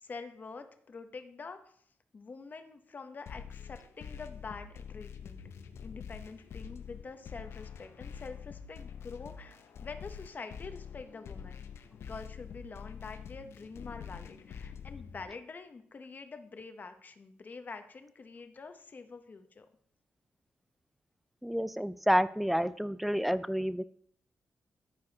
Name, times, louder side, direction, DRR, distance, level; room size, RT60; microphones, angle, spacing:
voice 1, 0.0-1.7 2.1-5.4 5.8-11.6 12.0-19.7, left 4 dB, 40° left, 8 dB, 0.8 m, -46 dB
sound 1, 3.3-15.3, left 7 dB, 70° left, 0.6 m, -46 dB
voice 2, 21.4-23.8, equal, ahead, 15 dB, 0.3 m, -29 dB
14.0 x 4.7 x 2.8 m, 0.62 s
cardioid pair, 95°, 4 cm